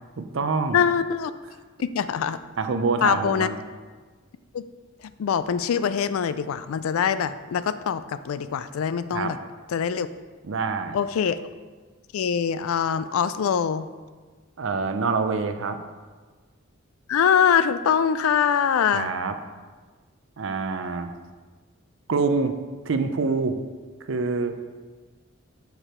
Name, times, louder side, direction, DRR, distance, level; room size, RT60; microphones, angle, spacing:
voice 1, 0.2-0.8 2.6-3.6 9.1-9.3 10.4-11.0 14.6-15.8 18.9-19.3 20.4-21.1 22.1-22.5 22.9-23.6 24.1-24.7, right 4 dB, 65° right, 8 dB, 0.5 m, -26 dB
voice 2, 0.7-1.3 1.8-2.4 3.0-3.5 4.5-4.7 5.0-9.4 9.7-10.1 10.9-11.4 12.1-13.9 17.1-19.1, left 7 dB, 85° left, 13 dB, 0.3 m, -23 dB
6.6 x 4.8 x 4.4 m, 1.4 s
head